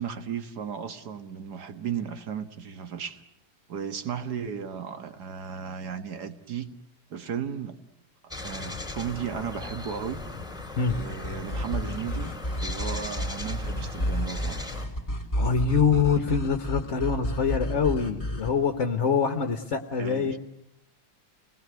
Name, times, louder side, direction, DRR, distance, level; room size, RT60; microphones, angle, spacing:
voice 1, 0.0-3.2 3.7-6.7 7.1-7.8 8.2-10.2 11.0-12.3 12.6-14.7 20.0-20.4, right 7 dB, 60° right, 2.1 m, -35 dB
sound 1, 8.3-14.9, left 2 dB, ahead, 3.8 m, -39 dB
sound 2, 10.9-18.5, equal, 15° left, 3.4 m, -31 dB
voice 2, 15.3-20.4, left 6 dB, 40° left, 1.5 m, -25 dB
29.5 x 21.0 x 9.5 m
omnidirectional pair, 2.1 m